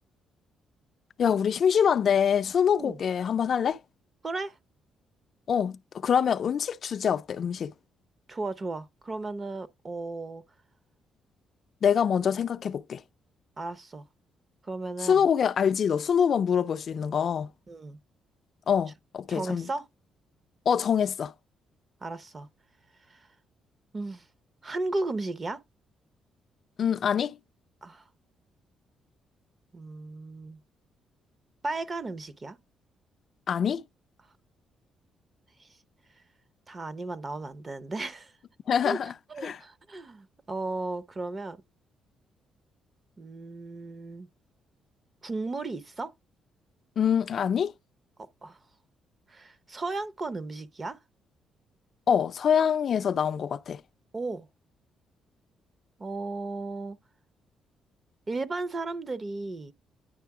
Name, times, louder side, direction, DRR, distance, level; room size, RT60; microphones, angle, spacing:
voice 1, 1.2-3.8 5.5-7.7 11.8-13.0 15.0-17.5 18.7-19.7 20.7-21.3 26.8-27.4 33.5-33.8 38.7-39.1 39.4-39.6 47.0-47.7 52.1-53.8, left 7 dB, 55° left, 0.3 m, -25 dB
voice 2, 4.2-4.6 8.3-10.4 13.6-14.1 14.7-15.2 17.7-18.0 19.3-19.8 22.0-22.5 23.1-23.3 23.9-24.2 24.6-25.6 27.8-28.0 29.7-30.6 31.6-32.6 35.6-35.7 36.7-38.3 38.8-39.0 39.3-41.6 43.2-44.3 45.2-46.1 48.2-48.6 49.3-51.0 54.1-54.5 56.0-57.0 58.3-59.7, right 3 dB, 30° right, 0.7 m, -35 dB
10.0 x 3.3 x 4.7 m
cardioid pair, 90°, 0 cm